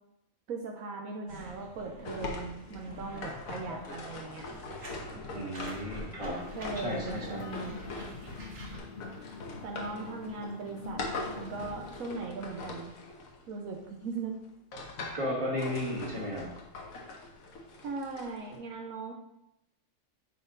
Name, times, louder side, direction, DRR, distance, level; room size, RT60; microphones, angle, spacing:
voice 1, 0.5-4.5 6.5-7.8 9.6-12.9 13.5-14.4 17.8-19.1, right 4 dB, 75° right, 2 dB, 1.2 m, -39 dB
sound 1, 1.3-8.8, equal, 55° right, 1.8 m, -46 dB
sound 2, 2.0-13.9 14.4-15.3 15.6-18.6, left 3 dB, 75° left, 1.5 m, -42 dB
voice 2, 5.3-6.4 6.8-7.5 15.1-16.5, left 1 dB, 25° right, -4 dB, 1.8 m, -34 dB
sound 3, 6.4-11.9, left 4 dB, 55° left, 0.6 m, -45 dB
8.9 x 4.2 x 3.9 m, 0.85 s
omnidirectional pair, 1.5 m